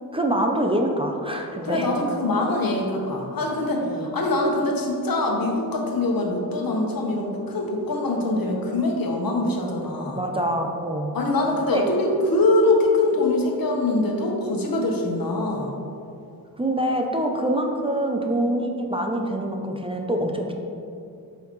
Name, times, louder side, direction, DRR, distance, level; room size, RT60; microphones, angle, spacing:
voice 1, 0.1-1.9 3.8-4.1 10.2-11.2 11.6-11.8 16.6-20.5, right 1 dB, 15° right, 2 dB, 0.6 m, -25 dB
voice 2, 1.6-10.2 11.1-15.7, left 2 dB, 70° left, 0 dB, 1.2 m, -23 dB
8.3 x 5.7 x 3.1 m, 2.7 s
wide cardioid pair, 105°, 36 cm